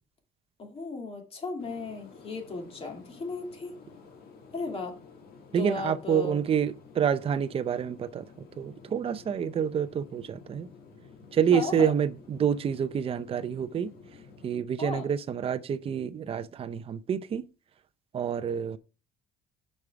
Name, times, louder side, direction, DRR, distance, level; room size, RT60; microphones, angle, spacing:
voice 1, 0.6-3.8 4.5-4.9 5.6-6.4 11.5-11.9 14.8-15.0, left 3 dB, 35° left, 2.5 m, -35 dB
sound 1, 1.6-14.5, left 4 dB, 65° left, 1.8 m, -52 dB
voice 2, 5.5-10.7 11.3-13.9 14.4-17.5 18.1-18.8, right 8 dB, 35° right, 0.5 m, -28 dB
6.5 x 5.4 x 4.7 m
cardioid pair, 110°, 17 cm